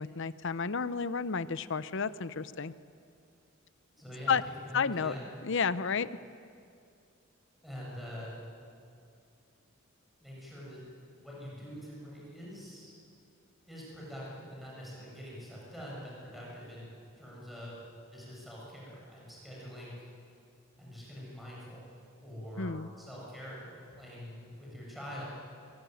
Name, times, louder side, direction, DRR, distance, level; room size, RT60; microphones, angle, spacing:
voice 1, 0.0-2.7 4.3-4.4 4.7-5.1 5.4-6.1 22.6-22.9, left 5 dB, 60° left, 14 dB, 0.8 m, -31 dB
voice 2, 4.0-4.4 4.7-5.2 7.6-8.4 10.2-10.8 11.1-12.9 13.7-16.9 17.2-17.8 18.1-20.1 20.8-21.8 22.2-25.2, equal, ahead, -6 dB, 7.5 m, -45 dB
24.0 x 22.5 x 9.4 m, 2.4 s
head